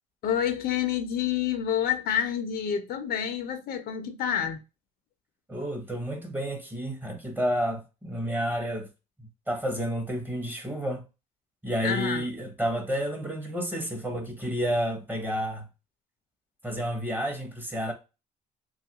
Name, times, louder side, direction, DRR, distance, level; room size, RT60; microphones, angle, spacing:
voice 1, 0.2-4.6 11.8-12.2, left 9 dB, 65° left, 0.6 m, -28 dB
voice 2, 5.5-8.9 9.2-11.0 11.6-15.7 16.6-17.9, equal, 10° right, 0.8 m, -30 dB
3.1 x 2.3 x 2.8 m
cardioid pair, 110°, 17 cm